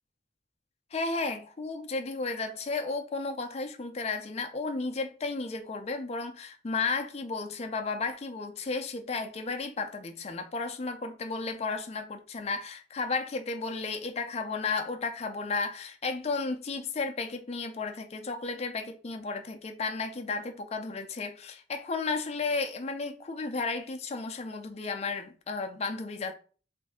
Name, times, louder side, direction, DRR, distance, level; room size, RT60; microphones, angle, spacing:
voice 1, 0.9-26.3, left 4 dB, 35° left, 0.4 m, -33 dB
3.1 x 2.6 x 3.4 m
head